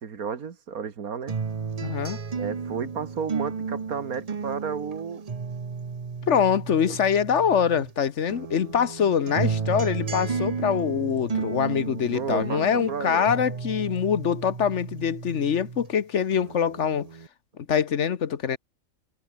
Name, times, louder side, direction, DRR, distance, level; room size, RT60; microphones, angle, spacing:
voice 1, 0.0-1.3 2.4-5.2 6.9-7.0 12.1-13.3, right 6 dB, 90° right, 2.2 m, -32 dB
sound 1, 1.3-7.9 8.3-15.9 16.3-17.3, right 5 dB, 30° right, 0.8 m, -33 dB
voice 2, 1.8-2.2 6.3-17.1 17.7-18.6, left 7 dB, 60° left, 1.2 m, -24 dB
omnidirectional pair, 1.5 m